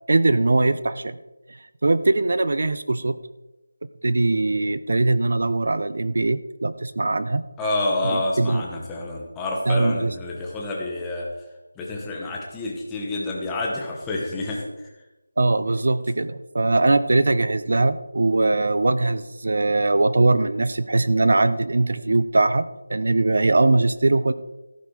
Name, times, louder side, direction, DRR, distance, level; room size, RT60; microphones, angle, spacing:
voice 1, 0.1-1.2 1.5-3.2 4.0-7.4 8.0-8.6 9.7-10.1 15.4-22.6 22.9-24.3, right 2 dB, 45° right, 14 dB, 0.7 m, -21 dB
voice 2, 7.6-11.4 11.8-14.6, left 2 dB, 5° left, -2 dB, 1.0 m, -28 dB
14.5 x 8.5 x 4.9 m, 1.0 s
figure-of-eight pair, 180°, 0 cm